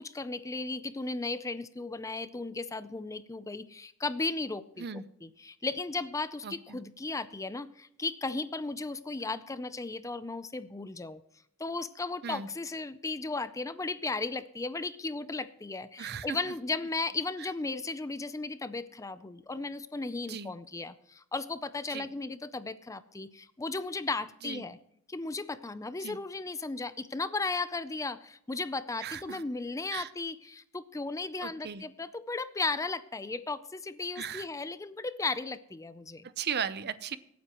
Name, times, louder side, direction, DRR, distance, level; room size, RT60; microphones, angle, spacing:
voice 1, 0.0-11.2 11.6-24.8 25.1-36.3, left 3 dB, 15° left, 14 dB, 0.5 m, -35 dB
voice 2, 6.4-6.8 12.2-12.5 16.0-16.5 20.3-20.5 21.9-22.1 24.4-24.6 26.0-26.2 29.0-29.4 29.9-30.1 31.4-31.8 34.2-34.5 36.4-37.2, right 7 dB, 50° right, 15 dB, 0.6 m, -37 dB
24.5 x 9.4 x 3.0 m, 0.77 s
head